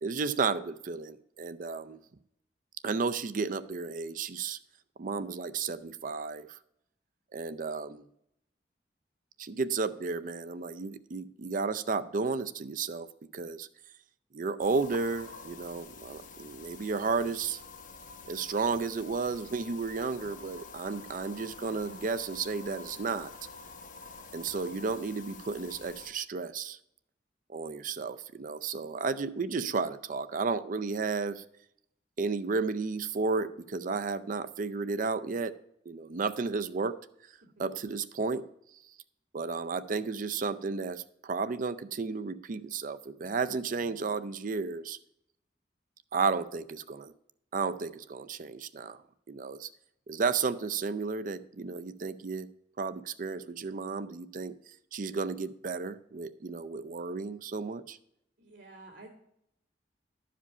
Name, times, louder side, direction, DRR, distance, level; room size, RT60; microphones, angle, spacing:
voice 1, 0.0-2.0 2.8-4.6 5.0-6.6 7.3-8.1 9.4-13.1 13.3-13.7 14.3-17.6 18.3-23.3 24.3-26.8 27.5-31.4 32.2-35.5 35.9-36.9 37.6-38.4 39.3-45.0 46.1-47.1 47.5-49.0 49.3-49.7 50.1-52.5 52.8-54.5 54.9-58.0, right 4 dB, 50° right, 13 dB, 0.5 m, -33 dB
sound 1, 14.6-26.1, left 4 dB, 45° left, 0.8 m, -48 dB
voice 2, 58.4-59.1, right 2 dB, 80° right, -7 dB, 2.3 m, -50 dB
12.0 x 5.0 x 5.5 m, 0.76 s
head